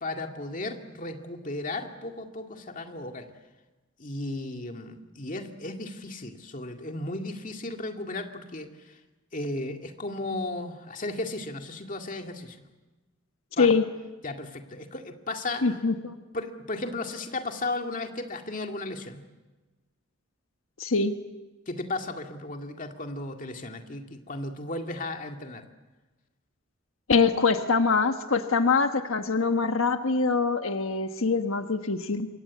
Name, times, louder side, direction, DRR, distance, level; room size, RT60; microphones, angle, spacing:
voice 1, 0.0-3.3 4.0-8.7 9.3-12.6 13.6-13.7 14.2-15.6 16.3-19.2 21.7-25.6, left 2 dB, 40° left, 4 dB, 2.2 m, -35 dB
voice 2, 15.6-16.1 20.8-21.2 27.1-32.3, left 4 dB, 90° left, 7 dB, 1.3 m, -24 dB
27.0 x 23.0 x 8.4 m, 1.2 s
head